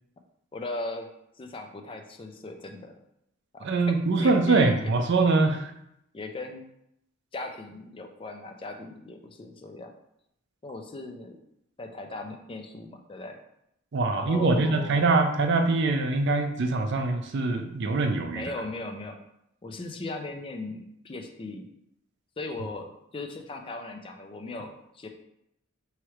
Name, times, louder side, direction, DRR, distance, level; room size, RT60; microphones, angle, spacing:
voice 1, 0.5-1.1 1.4-2.9 3.5-4.7 6.1-6.6 7.3-9.9 10.6-11.4 11.8-13.4 14.1-15.0 18.3-19.2 19.6-21.7 22.4-25.1, left 2 dB, 25° left, 4 dB, 0.4 m, -38 dB
voice 2, 3.6-5.7 13.9-18.5, right 3 dB, 60° right, 6 dB, 0.5 m, -23 dB
3.1 x 3.1 x 4.6 m, 0.78 s
head